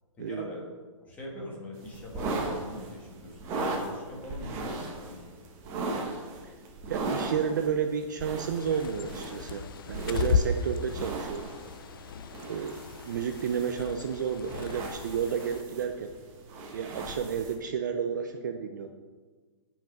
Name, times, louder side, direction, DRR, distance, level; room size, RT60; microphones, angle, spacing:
voice 1, 0.1-0.6 1.0-5.2, left 1 dB, 10° left, -2 dB, 1.4 m, -42 dB
sound 1, 1.8-17.5, right 2 dB, 15° right, 0.9 m, -38 dB
voice 2, 6.9-11.5 12.5-16.1 16.7-18.9, right 7 dB, 35° right, 6 dB, 0.4 m, -31 dB
Bird, 8.5-15.6, left 5 dB, 45° left, 0.5 m, -34 dB
9.9 x 5.7 x 5.2 m, 1.5 s
hypercardioid pair, 170°, 17 cm